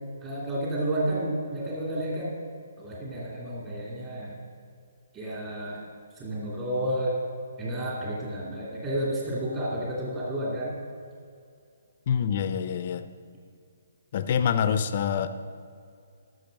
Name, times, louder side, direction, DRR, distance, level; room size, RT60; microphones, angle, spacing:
voice 1, 0.2-2.3 2.8-4.3 5.1-5.8 6.2-7.2 7.6-10.7, right 1 dB, 25° right, -5 dB, 2.6 m, -31 dB
voice 2, 12.1-13.1 14.1-15.3, left 7 dB, 45° left, 11 dB, 0.6 m, -26 dB
13.0 x 6.4 x 5.3 m, 2.3 s
hypercardioid pair, 145°, 0 cm